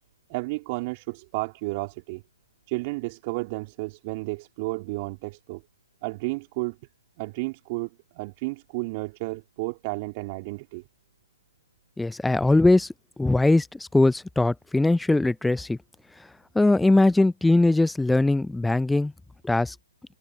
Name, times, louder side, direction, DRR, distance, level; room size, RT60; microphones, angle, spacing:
voice 1, 0.3-2.2 2.7-5.6 6.0-6.8 7.2-10.8, right 25 dB, 35° right, 3.5 m, -32 dB
voice 2, 12.0-12.9 13.2-15.8 16.5-19.1 19.4-19.7, left 2 dB, 5° left, 0.6 m, -21 dB
hypercardioid pair, 135°, 0 cm